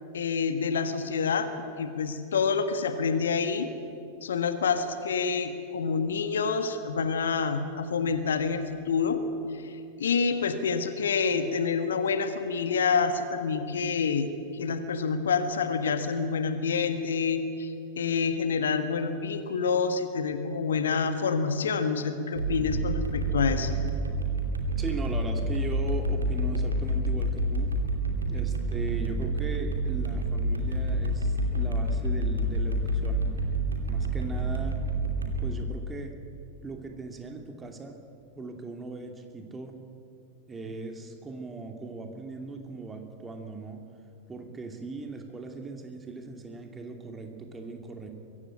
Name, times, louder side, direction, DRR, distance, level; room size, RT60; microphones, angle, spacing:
voice 1, 0.1-1.5 1.8-3.7 4.2-9.2 9.5-14.3 14.5-23.7, left 5 dB, 65° left, 9 dB, 1.5 m, -27 dB
sound 1, 22.3-35.5, right 1 dB, 75° right, 2.7 m, -28 dB
voice 2, 24.8-27.7 28.3-33.3 33.9-34.8 35.4-36.1 36.6-38.0 38.4-39.8 40.5-43.8 44.3-48.1, right 3 dB, 15° right, 4 dB, 2.6 m, -39 dB
23.0 x 15.5 x 8.9 m, 2.6 s
figure-of-eight pair, 90°, 0 cm